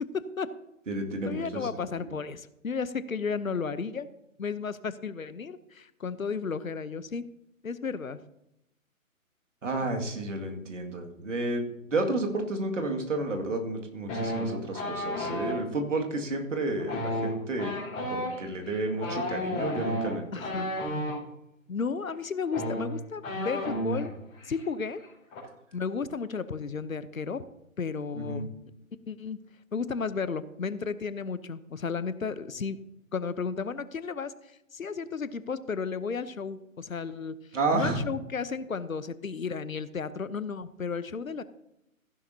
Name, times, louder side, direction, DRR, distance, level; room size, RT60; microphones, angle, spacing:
voice 1, 0.1-0.5 1.3-4.1 4.4-7.2 7.6-8.2 20.3-20.7 21.7-24.1 24.4-25.0 25.7-27.4 27.8-28.5 29.1-29.4 29.7-32.8 33.1-34.3 34.7-37.4 37.7-41.4, left 5 dB, 75° left, 15 dB, 0.9 m, -33 dB
voice 2, 0.9-1.4 1.7-2.1 9.6-17.7 18.1-20.7 28.1-28.5 37.5-38.0, right 2 dB, 60° right, 3 dB, 2.2 m, -31 dB
sound 1, 14.1-15.6 16.8-21.2 22.1-22.2 22.4-24.1 24.4-24.6 24.9-25.4, equal, 15° left, 5.0 m, -32 dB
15.0 x 11.0 x 2.8 m, 0.84 s
figure-of-eight pair, 140°, 42 cm